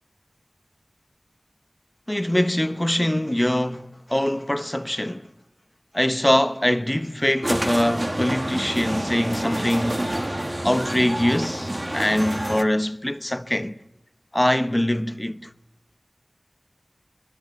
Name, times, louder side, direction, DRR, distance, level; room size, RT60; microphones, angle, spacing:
voice 1, 2.1-5.3 5.9-10.1 10.6-13.7 14.3-15.5, left 1 dB, 20° left, 0.9 m, -23 dB
sound 1, 7.4-12.6, right 1 dB, 30° right, 1.6 m, -28 dB
22.5 x 20.5 x 9.2 m
wide cardioid pair, 50°, 0 cm